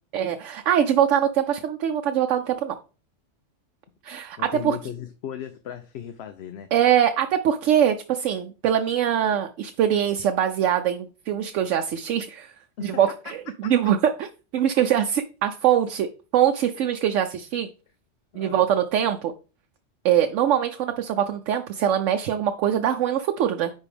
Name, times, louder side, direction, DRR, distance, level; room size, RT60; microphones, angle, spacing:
voice 1, 0.1-2.8 4.0-4.4 4.6-4.8 6.7-12.5 12.8-14.3 14.5-17.7 18.3-19.3 20.0-23.7, right 9 dB, 80° right, 6 dB, 0.9 m, -23 dB
voice 2, 4.4-6.7 12.8-13.0 13.6-13.7 18.3-18.7, left 9 dB, 65° left, 9 dB, 0.9 m, -36 dB
9.8 x 4.1 x 3.5 m, 0.34 s
omnidirectional pair, 1.3 m